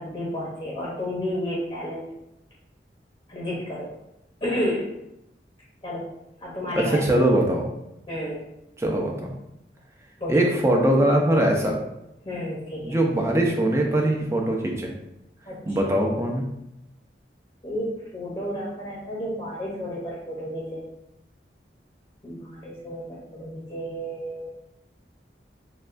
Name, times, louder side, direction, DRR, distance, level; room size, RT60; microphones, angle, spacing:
voice 1, 0.0-2.0 3.3-3.9 4.4-4.9 5.8-6.1 6.4-7.2 8.1-8.4 10.2-10.4 12.3-13.0 15.5-15.8 17.6-20.8 22.2-24.5, equal, 25° left, -5 dB, 0.8 m, -31 dB
voice 2, 6.7-7.7 8.8-9.3 10.3-11.8 12.8-14.9 15.7-16.4, right 1 dB, 15° right, 0 dB, 0.6 m, -22 dB
6.5 x 2.3 x 2.5 m, 0.86 s
head